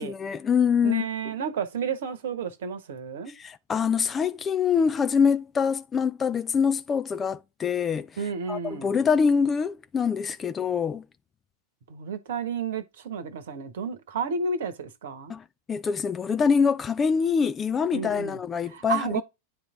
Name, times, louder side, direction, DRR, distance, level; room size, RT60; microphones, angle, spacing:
voice 1, 0.0-1.1 3.4-8.1 8.5-11.0 15.3-19.2, left 6 dB, 20° left, 0.4 m, -25 dB
voice 2, 0.8-3.3 8.2-8.9 11.9-15.3 17.9-18.4 18.7-19.2, right 5 dB, 60° right, 1.1 m, -31 dB
9.6 x 3.3 x 3.6 m
figure-of-eight pair, 90°, 0 cm